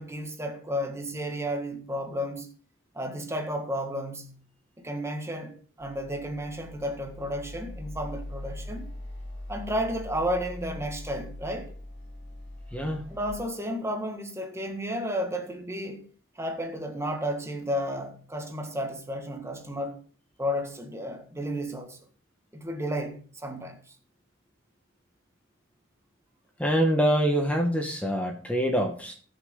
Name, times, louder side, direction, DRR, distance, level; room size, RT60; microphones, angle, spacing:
voice 1, 0.0-2.5 2.9-4.3 4.8-8.9 9.5-11.7 13.1-16.1 16.3-20.0 20.4-22.0 22.5-23.8, equal, 15° right, 1.7 m, -32 dB
sound 1, 5.8-13.3, left 1 dB, 40° left, 3.9 m, -41 dB
voice 2, 12.7-13.0 26.6-29.1, equal, 5° left, 1.4 m, -25 dB
20.0 x 6.7 x 3.8 m
head